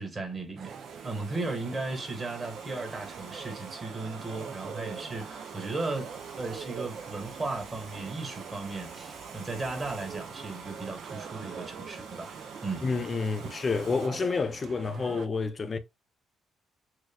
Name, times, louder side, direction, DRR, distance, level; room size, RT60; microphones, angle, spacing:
voice 1, 0.0-6.1 6.4-12.3 12.6-12.9, right 3 dB, 30° right, 1.5 m, -36 dB
sound 1, 0.6-15.3, right 7 dB, 60° right, 0.4 m, -44 dB
Domestic sounds home sounds, 0.7-14.1, right 4 dB, 85° right, 1.0 m, -47 dB
voice 2, 12.8-15.8, left 4 dB, 35° left, 0.6 m, -29 dB
6.3 x 2.2 x 2.2 m
cardioid pair, 90°, 0 cm